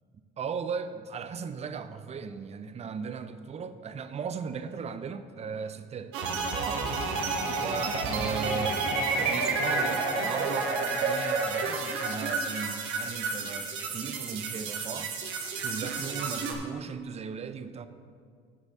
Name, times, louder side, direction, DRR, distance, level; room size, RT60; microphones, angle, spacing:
voice 1, 0.4-6.2 6.5-6.9 7.5-8.9 9.2-15.1 15.6-17.9, right 6 dB, 30° right, 11 dB, 0.6 m, -37 dB
sound 1, 6.1-16.5, right 3 dB, 75° right, 1.2 m, -30 dB
15.5 x 5.3 x 3.6 m, 2.3 s
supercardioid pair, 85°, 21 cm